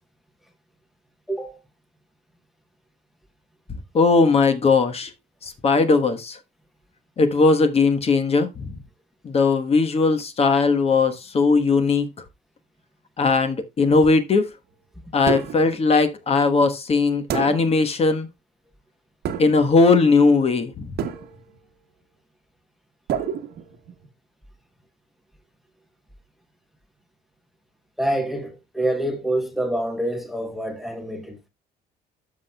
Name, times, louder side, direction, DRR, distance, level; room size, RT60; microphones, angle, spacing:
voice 1, 1.3-1.6 28.0-31.5, right 1 dB, ahead, 0.9 m, -26 dB
voice 2, 3.9-5.1 5.4-6.4 7.2-8.7 9.2-12.1 13.2-14.5 15.1-18.3 19.4-20.9, left 4 dB, 35° left, 1.2 m, -19 dB
sound 1, 15.3-15.8 17.3-17.9 19.2-19.8 21.0-21.6 23.1-24.1, right 8 dB, 70° right, 1.2 m, -29 dB
13.5 x 5.8 x 2.2 m
cardioid pair, 110°, 17 cm